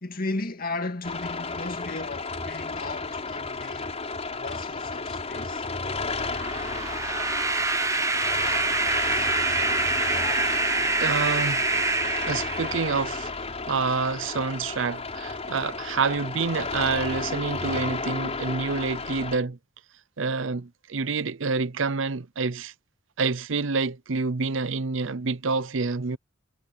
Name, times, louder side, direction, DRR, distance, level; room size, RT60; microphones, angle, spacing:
voice 1, 0.0-3.9 4.4-5.7, left 2 dB, 50° left, 2.0 m, -35 dB
sound 1, 1.0-19.4, left 3 dB, 35° left, 4.1 m, -32 dB
sound 2, 6.2-13.2, right 3 dB, 15° right, 1.1 m, -26 dB
sound 3, 7.1-15.8, left 1 dB, 10° left, 4.5 m, -53 dB
voice 2, 11.0-11.7 12.3-13.3 13.7-19.6 20.2-22.7 23.2-26.2, right 4 dB, 75° right, 0.7 m, -27 dB
head